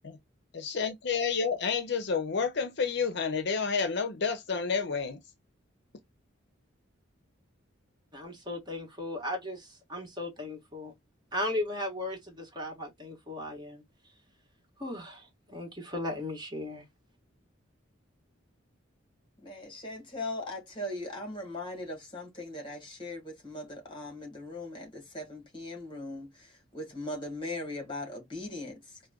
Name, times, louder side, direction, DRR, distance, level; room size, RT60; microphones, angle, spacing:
voice 1, 0.5-5.2, left 5 dB, 55° left, 0.6 m, -30 dB
voice 2, 8.1-10.9 11.3-13.8 14.8-16.8, left 1 dB, 20° right, 1.2 m, -36 dB
voice 3, 19.4-29.0, left 1 dB, 25° left, 1.5 m, -39 dB
4.7 x 2.2 x 2.2 m
head